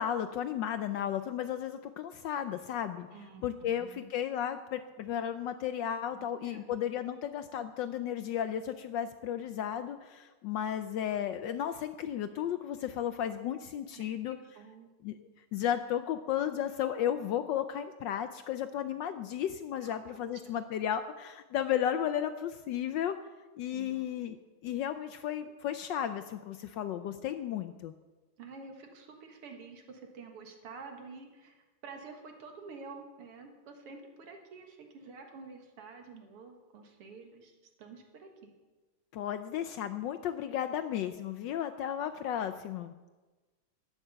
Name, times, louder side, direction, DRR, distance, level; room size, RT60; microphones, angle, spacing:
voice 1, 0.0-3.1 3.4-14.4 15.0-23.1 23.5-24.4 24.6-27.9 39.1-42.9, left 10 dB, 75° left, 10 dB, 1.0 m, -34 dB
voice 2, 3.1-4.1 6.1-6.7 13.9-14.9 19.8-20.2 23.7-24.1 28.4-38.5, right 4 dB, 90° right, 4 dB, 2.5 m, -49 dB
12.0 x 8.8 x 6.8 m, 1.2 s
omnidirectional pair, 2.4 m